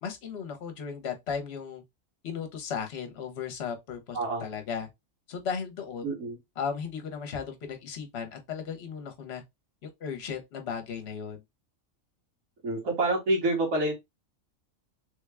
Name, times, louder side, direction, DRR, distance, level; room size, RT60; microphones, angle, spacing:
voice 1, 0.0-1.8 2.2-4.9 5.3-6.0 6.6-9.4 9.8-11.4, left 6 dB, 55° left, 1.0 m, -36 dB
voice 2, 6.0-6.4 12.6-13.9, right 2 dB, 90° right, 1.7 m, -27 dB
3.5 x 2.2 x 3.3 m
omnidirectional pair, 1.4 m